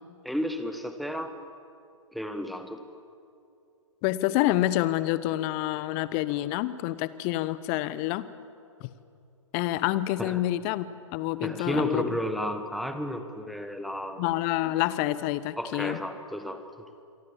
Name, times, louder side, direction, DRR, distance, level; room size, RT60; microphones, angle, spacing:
voice 1, 0.2-1.3 2.1-2.8 10.2-10.4 11.4-14.3 15.6-16.6, equal, ahead, 8 dB, 1.3 m, -32 dB
voice 2, 4.0-8.2 9.5-10.9 11.1-12.0 14.2-16.0, left 15 dB, 25° left, 16 dB, 0.9 m, -27 dB
27.0 x 23.5 x 7.3 m, 2.5 s
figure-of-eight pair, 120°, 17 cm